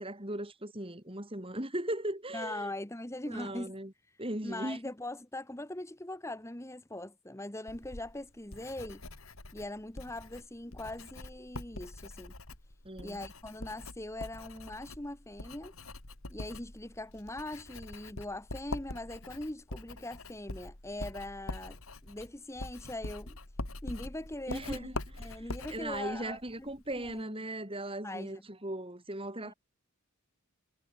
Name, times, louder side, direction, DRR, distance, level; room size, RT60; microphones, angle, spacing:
voice 1, 0.0-2.7 3.3-3.9 4.2-4.8 12.8-13.2 24.5-24.9 25.3-25.4 25.7-29.5, right 1 dB, 25° right, 4.1 m, -38 dB
voice 2, 2.3-3.7 4.4-9.0 9.5-12.3 13.0-15.7 16.3-23.4 23.8-24.9 25.2-26.7 27.0-27.4 28.0-28.4 29.4-29.5, left 1 dB, 15° left, 1.3 m, -41 dB
Writing, 7.7-27.2, left 2 dB, 75° left, 3.4 m, -44 dB
head